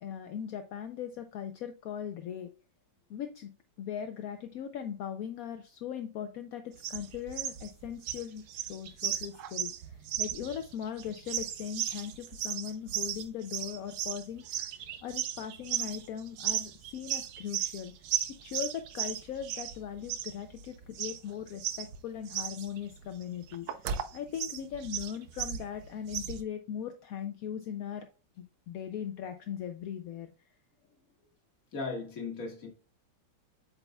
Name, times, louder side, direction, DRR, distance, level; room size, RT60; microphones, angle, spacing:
voice 1, 0.0-2.5 3.1-3.5 3.8-14.7 15.0-17.9 18.4-28.1 28.4-30.3, left 9 dB, 75° left, 0.8 m, -39 dB
sound 1, 6.8-26.4, right 10 dB, 65° right, 1.0 m, -36 dB
voice 2, 31.7-32.7, left 3 dB, 50° left, 1.9 m, -37 dB
8.2 x 5.6 x 2.2 m
omnidirectional pair, 2.0 m